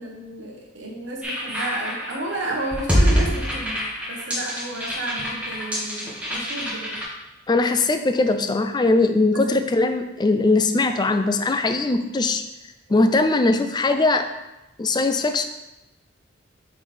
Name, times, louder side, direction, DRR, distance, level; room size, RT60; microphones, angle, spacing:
voice 1, 0.0-7.0 9.3-9.7, right 2 dB, 70° right, -1 dB, 1.0 m, -32 dB
sound 1, 1.2-7.0, equal, 5° right, 1.2 m, -25 dB
voice 2, 7.5-12.4 12.9-14.3 14.8-15.4, left 3 dB, 20° left, 8 dB, 0.3 m, -20 dB
7.8 x 4.0 x 3.3 m, 0.97 s
head